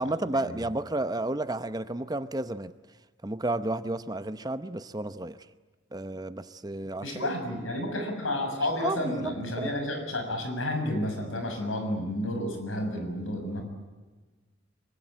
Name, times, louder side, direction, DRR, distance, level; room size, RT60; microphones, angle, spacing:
voice 1, 0.0-2.7 3.2-5.4 5.9-7.3 8.8-9.7, right 2 dB, 20° right, 12 dB, 0.8 m, -32 dB
voice 2, 7.0-13.6, left 1 dB, 85° left, 5 dB, 6.6 m, -31 dB
25.0 x 24.0 x 8.7 m, 1.3 s
head